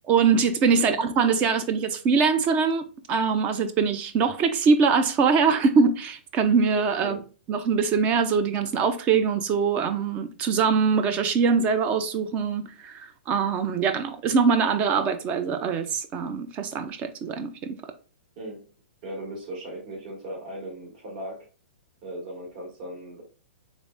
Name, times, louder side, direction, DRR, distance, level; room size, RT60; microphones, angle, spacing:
voice 1, 0.1-7.2 7.5-17.8, right 5 dB, 25° right, 0.4 m, -23 dB
voice 2, 19.0-21.4 22.0-23.2, right 1 dB, 50° right, 1.9 m, -37 dB
3.4 x 3.4 x 2.5 m
hypercardioid pair, 150°, 6 cm